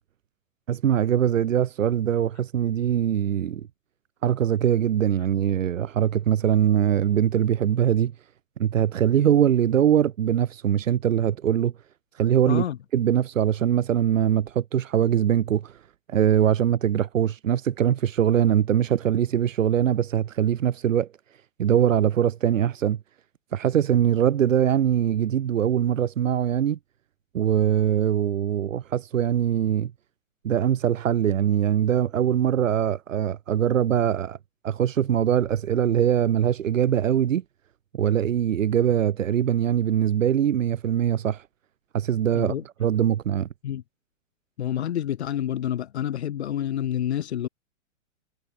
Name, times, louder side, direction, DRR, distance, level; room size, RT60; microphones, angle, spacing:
voice 1, 0.7-3.6 4.2-8.1 8.6-11.7 12.1-12.6 12.9-15.8 16.1-21.1 21.6-23.0 23.5-26.8 27.3-29.9 30.4-34.4 34.6-37.4 38.0-41.4 41.9-42.5 42.8-43.5, right 9 dB, 80° right, 2.6 m, -22 dB
voice 2, 12.5-12.8 42.3-42.6 43.6-43.8 44.6-47.5, left 11 dB, 55° left, 8.0 m, -28 dB
hypercardioid pair, 175°, 39 cm